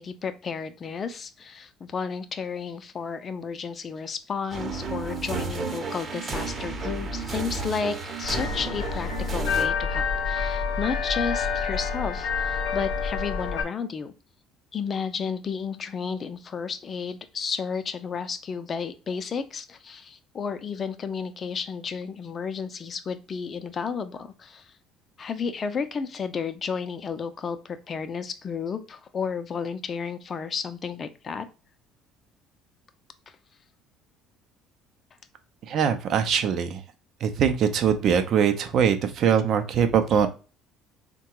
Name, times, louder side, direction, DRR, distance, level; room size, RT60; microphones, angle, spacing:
voice 1, 0.0-14.1 14.7-24.7 25.2-31.5, left 6 dB, 40° left, 10 dB, 0.5 m, -32 dB
sound 1, 4.5-9.7, right 4 dB, 40° right, 0.8 m, -32 dB
sound 2, 8.2-13.6, left 5 dB, 75° left, 0.7 m, -28 dB
voice 2, 35.7-36.8 37.2-40.3, right 7 dB, 60° right, 8 dB, 0.5 m, -22 dB
3.6 x 2.2 x 2.9 m, 0.33 s
hypercardioid pair, 65°, 0 cm